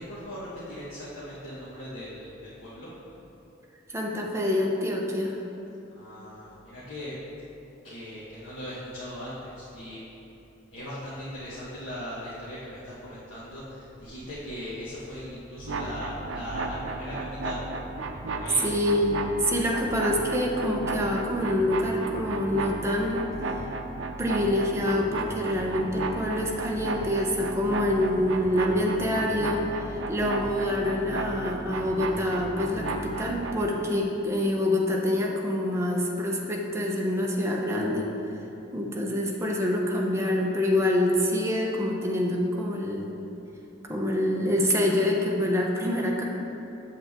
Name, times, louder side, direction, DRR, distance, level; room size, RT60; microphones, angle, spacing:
voice 1, 0.0-2.9 5.9-7.2 7.8-10.0 10.7-17.2 17.4-17.6 18.3-18.7, equal, 90° left, -10 dB, 1.5 m, -39 dB
voice 2, 3.9-5.4 18.6-23.3 24.2-38.1 38.7-43.1 43.9-46.2, left 1 dB, 15° right, -1 dB, 0.8 m, -26 dB
sound 1, 15.6-33.7, right 3 dB, 85° right, 0.6 m, -34 dB
7.9 x 7.6 x 3.6 m, 2.9 s
head